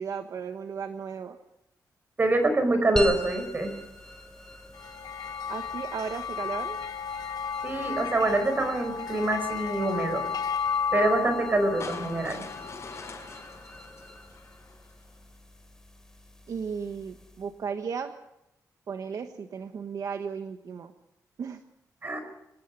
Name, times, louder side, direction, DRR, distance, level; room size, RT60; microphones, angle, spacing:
voice 1, 0.0-1.4 5.5-6.8 16.5-18.1 18.9-20.9 21.4-21.6, right 6 dB, 60° right, 7 dB, 1.3 m, -35 dB
voice 2, 2.2-3.7 7.6-10.3 10.9-12.4 22.0-22.2, right 2 dB, 30° right, 8 dB, 5.2 m, -25 dB
sound 1, 3.0-17.6, equal, 10° left, 3.6 m, -43 dB
sound 2, 4.8-13.4, left 7 dB, 80° left, 1.1 m, -33 dB
sound 3, 11.8-15.0, left 4 dB, 45° left, 5.9 m, -44 dB
25.5 x 20.0 x 5.4 m, 0.87 s
wide cardioid pair, 155°, 7 cm